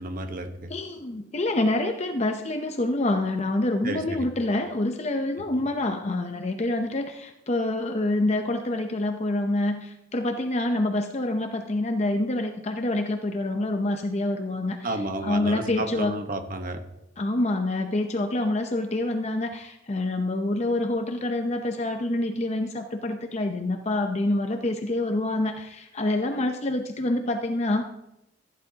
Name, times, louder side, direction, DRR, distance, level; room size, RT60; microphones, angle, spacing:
voice 1, 0.0-0.7 3.8-4.3 14.8-16.8, right 2 dB, 50° right, 6 dB, 1.2 m, -31 dB
voice 2, 0.7-14.8 15.2-16.2 17.2-27.9, left 2 dB, 40° left, 5 dB, 0.7 m, -26 dB
15.5 x 10.5 x 2.9 m, 0.87 s
head